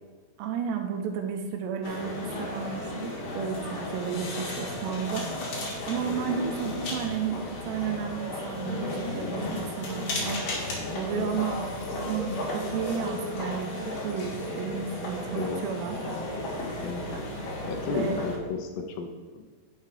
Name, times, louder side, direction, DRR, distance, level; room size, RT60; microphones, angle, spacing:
voice 1, 0.4-5.3 5.9-10.7 10.9-11.6 12.0-16.0 17.9-18.2, right 7 dB, 80° right, 4 dB, 2.9 m, -33 dB
sound 1, 1.8-18.4, left 1 dB, 55° left, 3.4 m, -34 dB
voice 2, 15.3-15.6 16.8-17.0 17.7-19.4, left 4 dB, 80° left, 4 dB, 2.7 m, -34 dB
10.5 x 7.5 x 3.3 m, 1.4 s
omnidirectional pair, 5.0 m